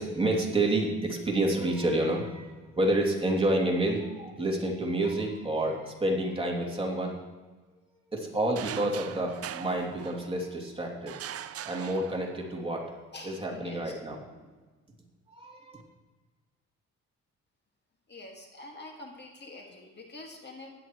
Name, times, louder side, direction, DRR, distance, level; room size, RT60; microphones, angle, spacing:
voice 1, 0.0-7.2 8.1-11.2 11.6-13.0 13.2-14.2 15.3-15.8, right 1 dB, 20° right, -2 dB, 2.7 m, -29 dB
sound 1, 8.6-10.5 11.1-12.6, right 10 dB, 55° right, 0.6 m, -41 dB
voice 2, 13.1-14.0 18.1-20.7, left 2 dB, 35° left, 1 dB, 2.0 m, -46 dB
16.0 x 11.0 x 3.1 m, 1.3 s
cardioid pair, 90°, 30 cm